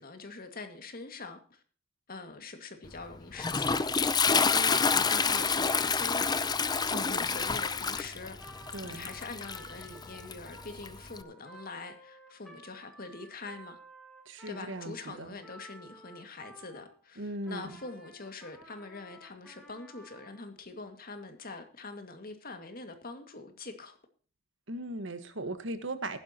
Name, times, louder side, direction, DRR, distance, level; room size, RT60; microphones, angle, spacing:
voice 1, 0.0-1.6 2.1-6.3 6.8-8.4 8.8-13.8 14.5-24.0, left 3 dB, 45° left, 2.1 m, -44 dB
Toilet flush, 2.9-11.2, left 5 dB, 20° left, 0.6 m, -29 dB
Trumpet, 5.3-17.0 17.4-20.4, right 1 dB, ahead, 4.0 m, -54 dB
voice 2, 6.9-7.3 8.7-9.1 14.3-15.3 17.2-17.7 24.7-26.2, right 1 dB, 65° right, 1.5 m, -38 dB
15.0 x 12.0 x 3.0 m
head